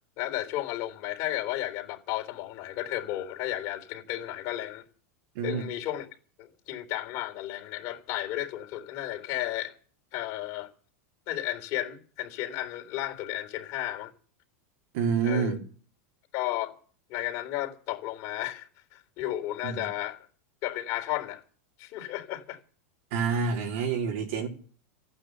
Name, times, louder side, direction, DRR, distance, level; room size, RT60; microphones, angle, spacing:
voice 1, 0.2-4.8 5.4-6.1 6.4-9.7 10.1-10.7 11.3-14.1 15.2-15.6 16.3-16.7 17.1-20.3 20.6-21.4 21.8-22.6, left 14 dB, 45° left, 3.7 m, -33 dB
voice 2, 14.9-15.6 19.6-19.8 23.1-24.5, right 5 dB, 60° right, 3.9 m, -28 dB
15.0 x 9.4 x 8.0 m
supercardioid pair, 160°, 8 cm